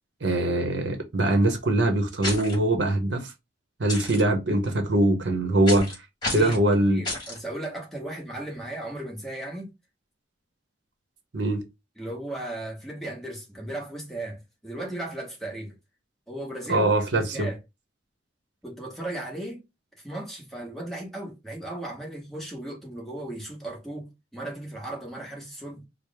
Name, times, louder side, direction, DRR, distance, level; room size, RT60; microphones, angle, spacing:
voice 1, 0.2-3.3 3.8-5.9 6.3-7.0 11.3-11.6 16.7-17.5, right 1 dB, 65° right, 0.8 m, -22 dB
sound 1, 2.2-2.6 3.9-4.2 5.7-5.9 6.2-6.6 7.0-7.4, left 2 dB, 20° left, 1.7 m, -30 dB
voice 2, 6.9-9.7 12.0-15.7 16.3-17.6 18.6-19.6 20.0-25.9, right 1 dB, ahead, 1.1 m, -36 dB
4.6 x 2.0 x 3.3 m
head